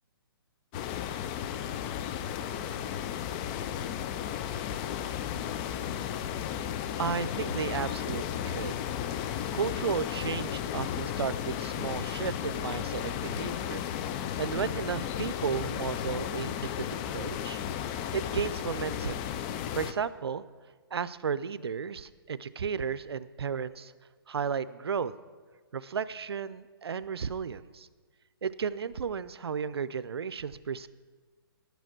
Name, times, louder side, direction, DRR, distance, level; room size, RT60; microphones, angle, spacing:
sound 1, 0.7-19.9, left 9 dB, 20° left, 0.4 m, -34 dB
voice 1, 7.0-8.8 9.2-13.8 14.4-17.6 18.1-19.3 19.7-20.5 20.9-23.9 24.3-25.1 25.7-27.9 28.4-30.9, right 6 dB, 85° right, 16 dB, 0.6 m, -34 dB
11.5 x 9.2 x 6.0 m, 1.5 s
hypercardioid pair, 155°, 13 cm